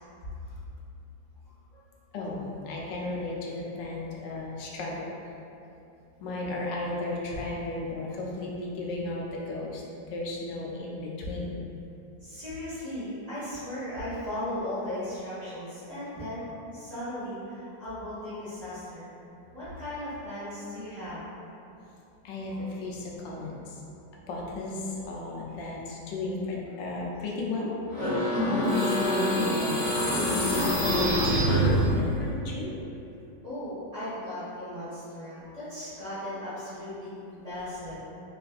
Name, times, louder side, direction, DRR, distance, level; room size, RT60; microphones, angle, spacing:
voice 1, 2.1-5.4 6.2-9.8 10.1-11.7 22.2-23.8 24.3-31.7 31.9-32.8, left 2 dB, 90° left, -3 dB, 1.3 m, -34 dB
voice 2, 3.8-4.1 12.2-16.5 16.7-19.1 19.5-21.2 33.4-38.0, left 1 dB, 25° right, -15 dB, 1.2 m, -37 dB
sound 1, 27.9-32.2, equal, 60° left, 0.3 m, -25 dB
4.0 x 2.3 x 2.4 m, 2.8 s
omnidirectional pair, 1.9 m